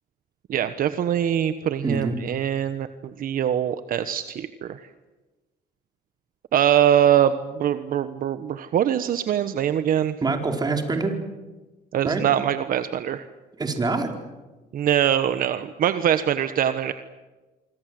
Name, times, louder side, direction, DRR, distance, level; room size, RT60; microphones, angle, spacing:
voice 1, 0.5-4.8 6.5-10.1 11.9-13.2 14.7-16.9, right 10 dB, 55° right, 11 dB, 1.2 m, -23 dB
voice 2, 1.8-2.2 10.2-11.1 12.0-12.3 13.6-14.1, right 3 dB, 25° right, 4 dB, 4.5 m, -25 dB
26.5 x 25.0 x 7.8 m, 1.2 s
cardioid pair, 110°, 17 cm